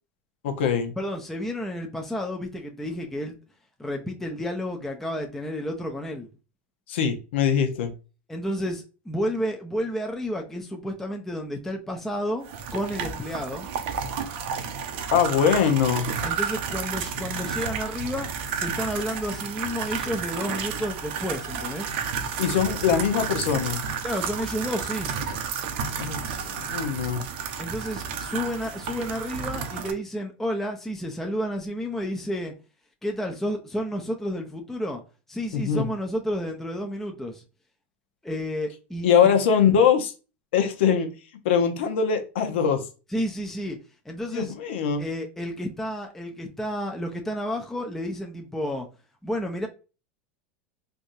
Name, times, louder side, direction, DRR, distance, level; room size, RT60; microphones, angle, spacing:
voice 1, 0.4-0.9 6.9-7.9 15.1-16.1 22.4-23.8 26.0-27.2 35.5-35.9 39.0-40.1 40.5-41.1 41.4-42.9 44.3-45.0, left 7 dB, 80° left, 0.7 m, -22 dB
voice 2, 1.0-3.4 3.8-6.3 8.3-13.7 16.2-21.9 24.0-25.1 27.6-32.5 33.0-35.0 35.3-37.4 38.2-39.1 43.1-43.8 44.1-44.5 45.0-48.9 49.2-49.7, equal, 5° left, 0.5 m, -31 dB
sound 1, 12.4-29.9, right 6 dB, 70° right, 0.6 m, -31 dB
3.4 x 2.7 x 2.6 m
supercardioid pair, 125°, 6 cm